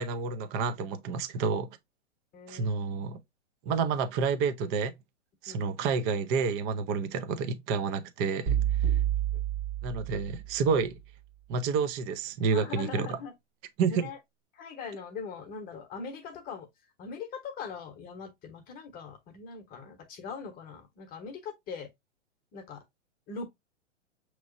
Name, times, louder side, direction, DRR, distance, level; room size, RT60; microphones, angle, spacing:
voice 1, 0.0-1.8 2.5-3.2 3.6-4.9 5.4-8.6 9.8-10.9 11.5-13.2 13.8-14.0, right 5 dB, 25° right, 0.5 m, -29 dB
voice 2, 2.3-2.7 5.5-5.6 12.5-13.3 13.9-14.2 14.5-16.7 17.0-21.9 22.5-22.8 23.3-23.5, left 5 dB, 25° left, 1.0 m, -41 dB
sound 1, 8.5-10.7, right 11 dB, 45° right, 1.2 m, -29 dB
6.0 x 3.0 x 2.5 m
hypercardioid pair, 120°, 37 cm